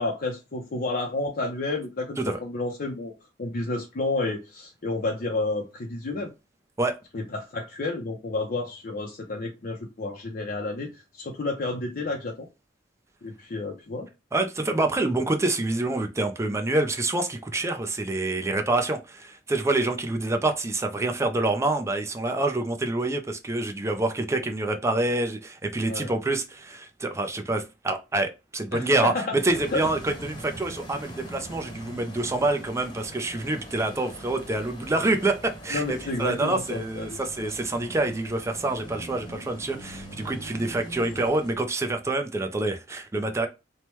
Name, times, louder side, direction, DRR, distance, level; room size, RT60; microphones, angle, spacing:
voice 1, 0.0-3.1 3.4-6.3 7.1-12.5 13.2-14.1 25.8-26.1 28.7-29.3 29.7-29.9 35.7-37.5, left 2 dB, 55° left, 0.5 m, -31 dB
voice 2, 14.3-43.5, right 2 dB, 15° right, 0.4 m, -27 dB
sound 1, 29.4-41.6, right 1 dB, 25° left, 0.9 m, -42 dB
3.2 x 2.1 x 2.9 m
head